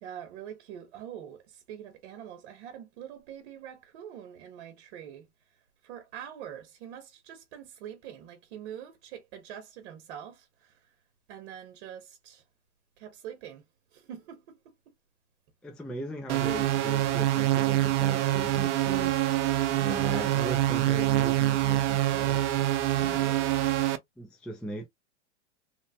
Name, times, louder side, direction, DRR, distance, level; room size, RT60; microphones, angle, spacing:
voice 1, 0.0-5.3 5.8-10.8 11.3-12.4 13.0-13.6 13.9-14.7 19.7-20.5 23.0-23.8, right 9 dB, 65° right, 1.0 m, -44 dB
voice 2, 15.6-19.2 19.8-22.6 24.2-24.9, right 1 dB, 5° left, 0.5 m, -38 dB
sound 1, 16.3-24.0, right 14 dB, 80° right, 0.6 m, -25 dB
3.2 x 2.0 x 2.7 m
hypercardioid pair, 120°, 35 cm